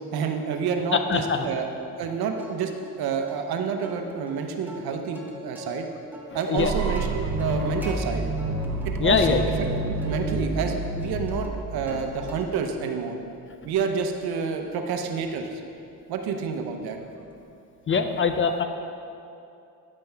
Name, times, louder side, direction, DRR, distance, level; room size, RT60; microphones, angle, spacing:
voice 1, 0.1-1.7 2.0-2.7 3.0-5.9 6.3-8.3 8.8-9.4 9.8-13.2 13.6-15.5 16.1-17.0, right 6 dB, 80° right, 5 dB, 0.9 m, -29 dB
voice 2, 0.9-1.5 6.5-6.7 9.0-9.5 11.9-12.0 17.9-18.6, left 5 dB, 35° left, 7 dB, 0.6 m, -23 dB
Plucked string instrument, 2.4-3.0 3.3-3.4 3.8-5.8 6.1-8.0 8.4-8.9 9.2-10.2 10.6-12.0 12.3-12.8 13.2-17.4, equal, 5° right, 1.3 m, -44 dB
sound 1, 6.6-12.5, right 2 dB, 45° right, 1.0 m, -29 dB
10.5 x 7.7 x 3.5 m, 2.6 s
cardioid pair, 90°, 37 cm